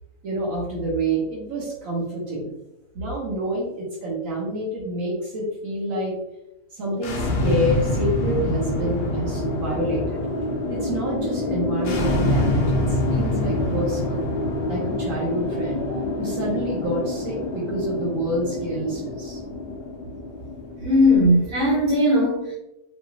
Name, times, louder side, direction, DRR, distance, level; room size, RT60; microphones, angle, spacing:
voice 1, 0.2-2.5 2.9-6.1 6.7-10.2 10.7-14.3 14.7-15.8 16.2-19.4, right 1 dB, 80° right, -4 dB, 1.4 m, -28 dB
sound 1, 6.9-21.9, left 1 dB, 55° left, 0.8 m, -26 dB
voice 2, 20.8-22.5, left 1 dB, 40° right, -10 dB, 1.5 m, -18 dB
4.9 x 3.2 x 2.4 m, 0.90 s
omnidirectional pair, 1.4 m